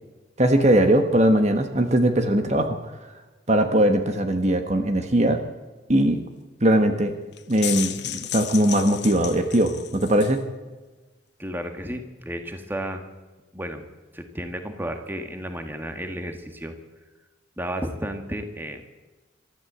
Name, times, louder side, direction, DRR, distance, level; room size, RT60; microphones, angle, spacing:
voice 1, 0.4-2.7 3.5-5.4 5.9-6.2 6.6-7.1 7.5-10.4, right 1 dB, 40° right, 6 dB, 1.5 m, -20 dB
sound 1, 7.3-10.4, left 12 dB, 65° left, 1.1 m, -33 dB
voice 2, 11.4-13.0 13.5-13.9 14.1-16.8 17.6-18.8, equal, 10° right, 6 dB, 1.7 m, -32 dB
24.5 x 13.0 x 8.1 m, 1.2 s
head